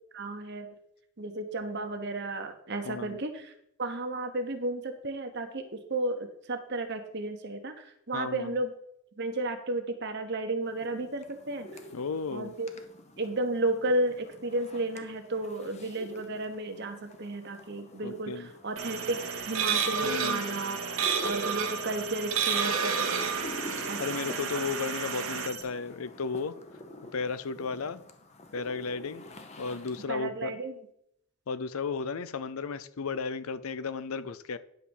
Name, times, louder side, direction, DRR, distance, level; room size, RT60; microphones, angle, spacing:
voice 1, 0.1-0.7 1.2-3.5 3.8-8.7 9.2-11.7 12.3-12.7 13.2-20.8 21.2-23.2 23.9-24.1 30.1-30.7, right 2 dB, 50° right, 7 dB, 1.2 m, -33 dB
voice 2, 2.8-3.2 8.1-8.5 11.9-12.5 18.0-18.5 20.0-20.4 23.7-26.5 27.1-28.0 28.5-29.2 29.6-30.5 31.5-34.6, left 5 dB, 80° left, 15 dB, 0.6 m, -34 dB
sound 1, 10.6-30.1, left 2 dB, 30° left, 0.9 m, -48 dB
sound 2, 18.8-25.6, right 7 dB, 30° right, 1.3 m, -42 dB
sound 3, 18.8-25.5, right 6 dB, 75° right, 1.2 m, -31 dB
10.5 x 4.3 x 7.1 m, 0.74 s
head